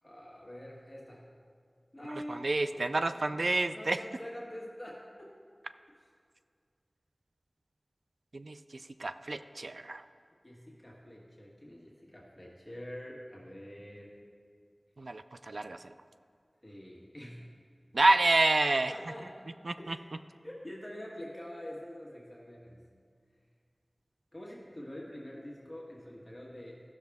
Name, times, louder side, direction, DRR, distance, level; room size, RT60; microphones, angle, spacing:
voice 1, 0.0-1.2 1.9-2.9 3.3-5.3 6.0-6.1 10.4-14.1 16.6-17.4 18.9-19.5 19.8-20.0 20.4-22.8 24.3-26.9, equal, 15° left, -5 dB, 1.5 m, -46 dB
voice 2, 2.3-4.0 8.3-8.6 9.0-10.0 15.0-15.8 17.9-18.9 19.7-20.0, right 2 dB, 80° right, 10 dB, 0.3 m, -28 dB
15.0 x 6.4 x 3.5 m, 2.2 s
wide cardioid pair, 60°, 0 cm